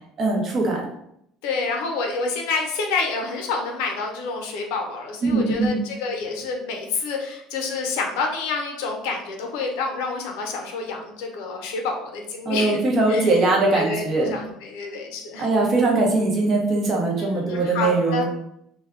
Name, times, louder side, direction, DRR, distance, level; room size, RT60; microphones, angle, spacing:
voice 1, 0.2-0.9 5.2-5.8 12.4-14.4 15.4-18.3, right 2 dB, 35° right, -1 dB, 0.7 m, -21 dB
voice 2, 1.4-12.8 13.1-13.3 13.7-15.5 17.2-18.3, left 4 dB, 90° left, 2 dB, 0.6 m, -28 dB
2.2 x 2.0 x 3.6 m, 0.76 s
cardioid pair, 155°, 0 cm